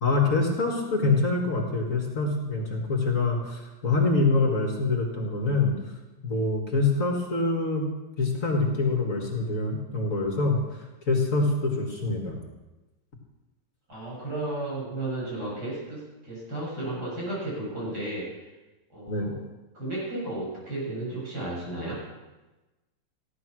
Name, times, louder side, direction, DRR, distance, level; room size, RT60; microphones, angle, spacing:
voice 1, 0.0-5.7 6.2-7.9 8.2-10.6 11.1-12.4 19.1-19.3, left 3 dB, 45° left, 1 dB, 2.2 m, -25 dB
voice 2, 13.9-18.5 18.9-19.4 19.7-22.0, right 2 dB, 60° right, -6 dB, 7.8 m, -33 dB
15.5 x 11.5 x 6.2 m, 1.1 s
omnidirectional pair, 2.0 m